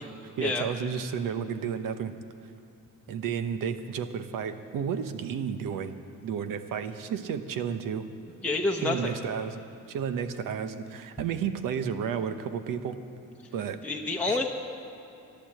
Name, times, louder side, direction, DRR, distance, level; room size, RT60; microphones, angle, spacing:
voice 1, 0.4-2.1 3.1-6.0 6.2-8.0 8.8-9.6 9.9-12.9 13.5-13.8 14.3-14.4, right 7 dB, 80° right, 10 dB, 0.9 m, -32 dB
voice 2, 8.4-9.1 13.8-14.5, left 2 dB, 5° left, -1 dB, 0.9 m, -28 dB
12.0 x 11.5 x 7.7 m, 2.7 s
cardioid pair, 95°, 32 cm